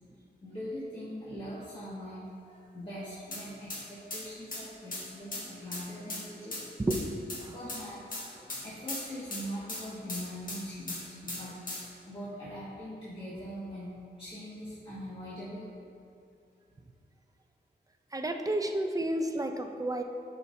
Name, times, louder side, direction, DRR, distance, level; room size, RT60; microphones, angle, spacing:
voice 1, 0.4-6.6 7.5-8.2 8.6-11.8 12.0-13.9 14.2-15.7, equal, 30° left, -11 dB, 1.8 m, -42 dB
sound 1, 3.3-3.4 3.7-3.8 4.1-4.2 4.5-4.6 4.9-5.0 5.3-5.4 5.7-5.8 6.1-6.2 6.5-6.6 6.9-7.0 7.3-7.4 7.7-7.8 8.1-8.6 8.9-10.6 10.9-11.0 11.3-11.9, left 2 dB, 50° left, 1.7 m, -37 dB
voice 2, 6.8-7.5 18.1-20.0, right 1 dB, 20° right, 5 dB, 0.5 m, -31 dB
11.0 x 5.7 x 2.7 m, 2.5 s
wide cardioid pair, 105°, 18 cm